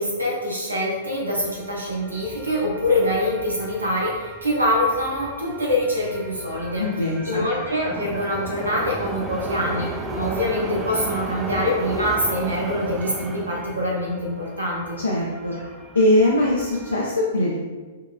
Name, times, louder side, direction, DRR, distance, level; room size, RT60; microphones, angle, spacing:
voice 1, 0.0-6.9 7.2-15.0, left 1 dB, 90° right, -3 dB, 0.6 m, -24 dB
sound 1, 1.1-17.0, right 2 dB, 15° right, 0.3 m, -35 dB
voice 2, 6.8-7.5 15.0-15.6 15.9-17.6, left 1 dB, 85° left, -4 dB, 0.4 m, -21 dB
4.7 x 2.2 x 2.2 m, 1.3 s
figure-of-eight pair, 105°, 0 cm